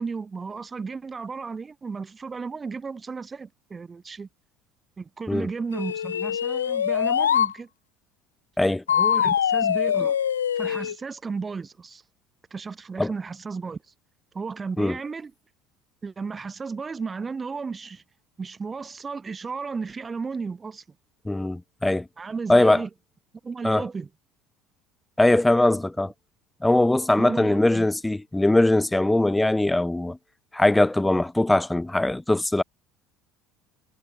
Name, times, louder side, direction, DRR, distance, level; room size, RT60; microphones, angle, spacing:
voice 1, 0.0-4.3 5.0-7.7 8.9-10.2 10.6-12.0 12.5-13.8 14.3-15.3 16.0-18.0 18.4-20.8 22.2-22.9 23.4-24.1 27.2-27.9, right 5 dB, 25° right, 1.9 m, -34 dB
sound 1, 5.7-7.5 8.9-10.9, left 9 dB, 80° left, 0.5 m, -23 dB
voice 2, 21.3-22.0 22.5-22.8 23.6-23.8 25.2-26.1 26.6-30.2 30.5-32.6, left 1 dB, 10° left, 0.6 m, -21 dB
figure-of-eight pair, 65°, 0 cm